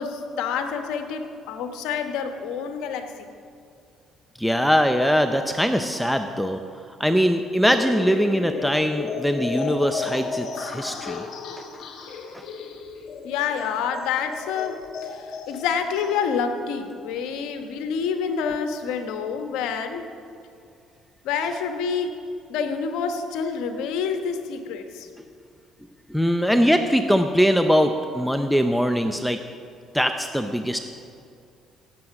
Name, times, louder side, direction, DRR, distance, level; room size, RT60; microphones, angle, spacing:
voice 1, 0.0-3.3 13.2-20.1 21.2-22.2 22.5-25.1, left 6 dB, 80° left, 7 dB, 1.2 m, -28 dB
voice 2, 4.4-6.6 7.0-11.3 12.3-12.4 26.1-29.4 29.9-30.8, equal, ahead, 7 dB, 0.7 m, -21 dB
sound 1, 7.6-16.3, left 5 dB, 65° left, 1.8 m, -34 dB
17.5 x 7.8 x 6.0 m, 2.4 s
supercardioid pair, 75°, 0 cm